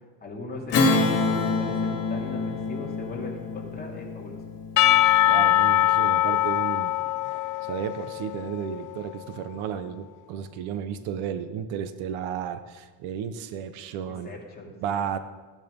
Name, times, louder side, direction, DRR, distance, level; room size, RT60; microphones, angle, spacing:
voice 1, 0.2-4.4 14.0-15.1, left 2 dB, 20° left, -2 dB, 2.8 m, -38 dB
Strum, 0.7-5.6, left 3 dB, 60° left, 2.2 m, -27 dB
Percussion / Church bell, 4.8-9.1, left 14 dB, 45° left, 0.5 m, -22 dB
voice 2, 5.3-6.9 7.6-14.3 14.8-15.2, right 8 dB, 85° right, 11 dB, 1.1 m, -33 dB
15.0 x 10.0 x 5.3 m, 1.3 s
cardioid pair, 150°, 47 cm